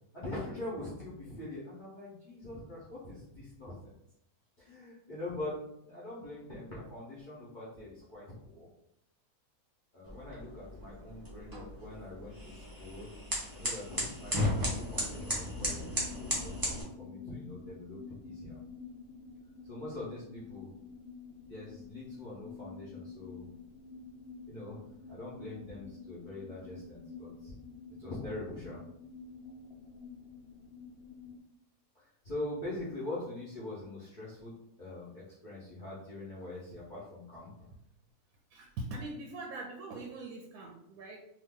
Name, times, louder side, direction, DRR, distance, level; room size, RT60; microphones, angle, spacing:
voice 1, 0.1-3.7 4.6-5.5 5.8-8.7 9.9-13.1 13.5-18.6 19.6-20.7 21.5-23.5 24.5-24.8 25.1-27.5 28.0-28.8 31.9-34.5 34.8-37.7, left 2 dB, 35° left, -9 dB, 0.8 m, -43 dB
sound 1, 10.0-16.8, equal, 20° right, 0.5 m, -36 dB
sound 2, 13.8-31.4, left 4 dB, 75° left, 1.1 m, -49 dB
voice 2, 38.5-41.2, right 2 dB, 75° right, 0 dB, 1.0 m, -42 dB
2.8 x 2.6 x 3.6 m, 0.76 s
omnidirectional pair, 1.6 m